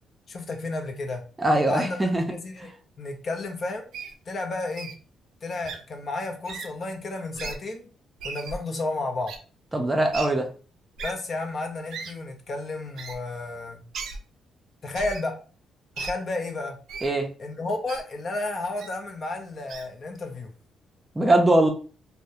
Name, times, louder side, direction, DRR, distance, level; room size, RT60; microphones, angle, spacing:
voice 1, 0.3-1.2 1.7-2.0 2.3-2.7 3.0-3.9 4.3-4.9 5.4-7.9 8.2-9.3 11.0-13.8 14.8-15.4 16.0-16.8 17.4-20.5, left 2 dB, 45° left, 4 dB, 0.5 m, -32 dB
voice 2, 1.4-2.2 9.7-10.5 17.0-17.3 21.2-21.7, right 1 dB, 15° right, 3 dB, 0.5 m, -21 dB
Wild animals, 3.9-4.1 4.8-4.9 5.6-5.8 6.4-6.7 7.3-7.6 8.2-8.6 9.3-9.4 10.1-10.3 11.0-11.1 11.9-12.1 13.0-13.2 13.9-14.2 14.9-15.2 16.0-16.1 16.9-17.1 17.9-18.0 18.8-18.9 19.7-19.9, right 4 dB, 75° right, 0.4 m, -35 dB
2.2 x 2.0 x 2.7 m, 0.38 s
cardioid pair, 90°, 0 cm